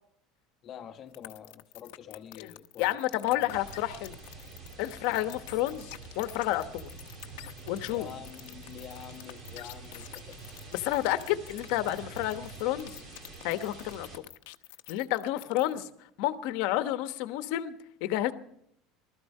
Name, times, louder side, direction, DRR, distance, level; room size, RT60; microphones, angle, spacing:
voice 1, 0.6-3.0 3.2-3.6 7.9-10.4 15.3-15.9, left 9 dB, 30° left, 7 dB, 1.2 m, -47 dB
sound 1, 1.1-15.8, left 19 dB, 85° left, 0.8 m, -47 dB
voice 2, 2.8-4.2 4.8-6.9 7.7-8.1 10.7-13.0 13.4-14.2 14.9-15.9 16.2-17.7 18.0-18.3, left 14 dB, 65° left, 11 dB, 1.1 m, -30 dB
sound 2, 3.5-14.2, right 3 dB, 35° right, 2.6 m, -47 dB
20.0 x 13.5 x 5.4 m, 0.72 s
cardioid pair, 165°, 0 cm